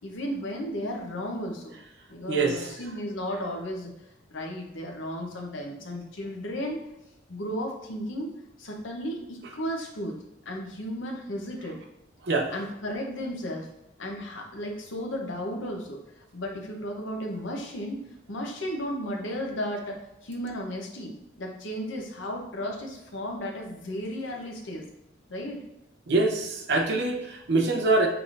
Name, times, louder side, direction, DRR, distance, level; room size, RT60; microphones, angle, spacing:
voice 1, 0.0-1.7 2.1-3.9 4.3-6.8 7.3-8.3 8.6-10.1 10.5-11.8 12.5-13.7 14.0-18.0 18.3-21.1 21.4-24.8 25.3-25.6, equal, 70° left, 1 dB, 0.9 m, -34 dB
voice 2, 2.3-2.7 12.3-12.5 26.1-28.1, right 3 dB, 55° right, 3 dB, 0.7 m, -24 dB
5.9 x 3.3 x 2.6 m, 0.88 s
head